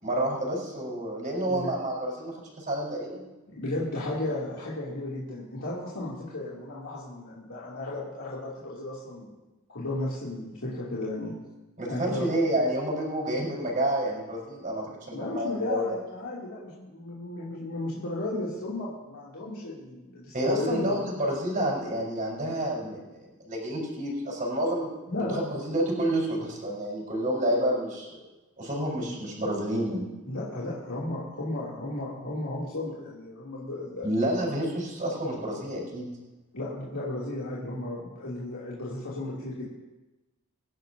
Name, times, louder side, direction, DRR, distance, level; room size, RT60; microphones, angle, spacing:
voice 1, 0.0-3.2 11.8-16.0 20.3-24.9 25.3-28.2 28.6-30.0 34.0-36.1, right 1 dB, 40° right, -4 dB, 4.3 m, -29 dB
voice 2, 3.5-9.3 9.7-11.3 11.9-12.3 15.1-21.0 25.1-25.4 29.0-29.1 30.2-34.1 36.5-39.7, left 2 dB, 75° left, -8 dB, 2.7 m, -34 dB
23.5 x 10.5 x 2.7 m, 1.1 s
head